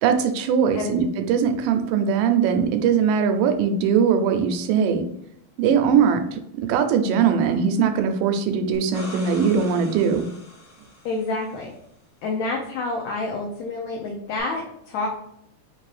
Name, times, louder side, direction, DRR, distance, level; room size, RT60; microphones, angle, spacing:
voice 1, 0.0-5.0 5.6-10.3, right 7 dB, 85° right, 6 dB, 2.2 m, -21 dB
sound 1, 8.7-11.6 14.4-14.5, left 1 dB, 35° left, 1.6 m, -41 dB
voice 2, 11.0-11.7 12.2-15.1, left 3 dB, 75° left, 0 dB, 1.8 m, -28 dB
5.2 x 2.6 x 3.2 m, 0.75 s
omnidirectional pair, 3.8 m